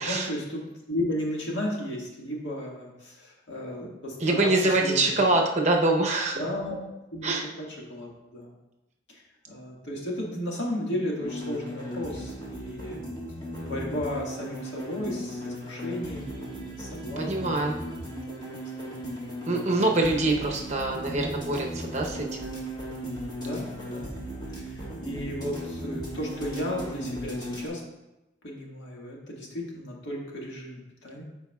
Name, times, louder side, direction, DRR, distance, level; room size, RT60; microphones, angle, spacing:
voice 1, 0.0-5.1 6.4-6.8 7.1-7.3 7.6-8.5 9.1-13.0 13.6-17.8 18.8-19.0 23.4-24.2 24.5-27.8 28.4-31.2, left 1 dB, 90° left, -3 dB, 1.8 m, -34 dB
voice 2, 4.2-6.4 7.2-7.4 17.2-17.7 19.5-22.5, right 2 dB, 40° right, 0 dB, 0.8 m, -24 dB
sound 1, 11.2-27.7, equal, 25° left, 1.4 m, -37 dB
13.0 x 4.7 x 2.3 m, 0.98 s
head